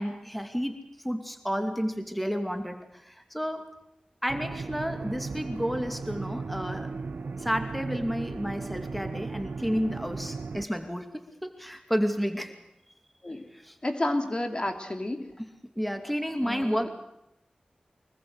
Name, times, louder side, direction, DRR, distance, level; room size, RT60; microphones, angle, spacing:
voice 1, 0.0-3.7 4.2-6.9 7.4-11.1 11.4-12.5 13.5-13.8 15.4-15.5 15.8-16.9, equal, ahead, 7 dB, 2.5 m, -31 dB
sound 1, 4.3-10.6, right 4 dB, 80° right, 0.9 m, -36 dB
voice 2, 13.8-15.3 16.3-16.9, left 1 dB, 35° left, 5 dB, 3.0 m, -31 dB
24.0 x 21.0 x 8.0 m, 0.84 s
cardioid pair, 45°, 3 cm